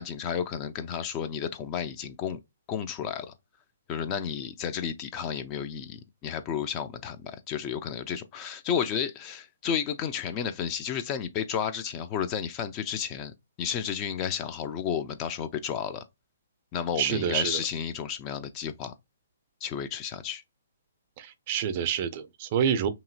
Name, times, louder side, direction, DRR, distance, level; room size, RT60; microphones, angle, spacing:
voice 1, 0.0-2.4 2.7-3.3 3.9-16.0 16.7-18.9 19.6-20.4, left 8 dB, 30° left, 0.3 m, -32 dB
voice 2, 17.0-17.6 21.2-22.9, right 8 dB, 40° right, 0.4 m, -27 dB
2.8 x 2.6 x 2.6 m
figure-of-eight pair, 130°, 0 cm